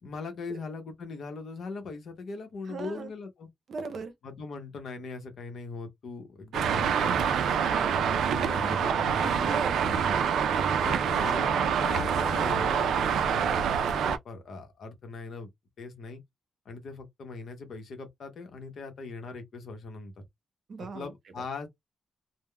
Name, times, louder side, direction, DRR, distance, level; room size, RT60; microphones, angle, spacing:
voice 1, 0.0-3.5 4.2-9.6 10.8-15.5 15.8-16.2 16.7-20.2 20.9-21.7, left 4 dB, 55° left, 0.8 m, -40 dB
voice 2, 2.7-3.1 3.7-4.1 7.7-7.9 9.2-10.3 20.7-21.1, right 4 dB, 45° right, 0.7 m, -38 dB
Traffic noise roadway noise, 6.5-14.2, right 7 dB, 85° right, 0.4 m, -26 dB
3.4 x 2.1 x 2.2 m
wide cardioid pair, 170°, 0 cm